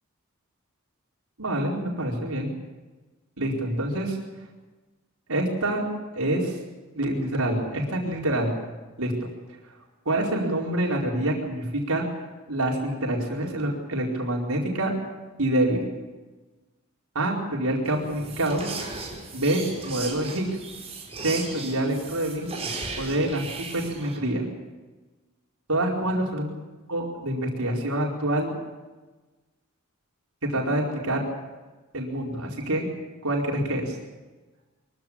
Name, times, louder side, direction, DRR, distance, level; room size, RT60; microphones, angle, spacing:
voice 1, 1.4-2.5 3.4-4.2 5.3-5.9 6.1-6.6 6.9-8.6 9.0-9.3 10.0-12.0 12.5-14.9 15.4-15.9 17.1-18.7 19.3-20.5 21.2-22.5 23.0-24.4 25.7-26.5 26.9-28.5 30.4-31.2 31.9-32.9 33.2-34.0, right 1 dB, 90° right, -1 dB, 4.7 m, -26 dB
sound 1, 17.8-24.2, right 3 dB, 30° right, 5.3 m, -36 dB
23.5 x 16.0 x 8.8 m, 1.2 s
head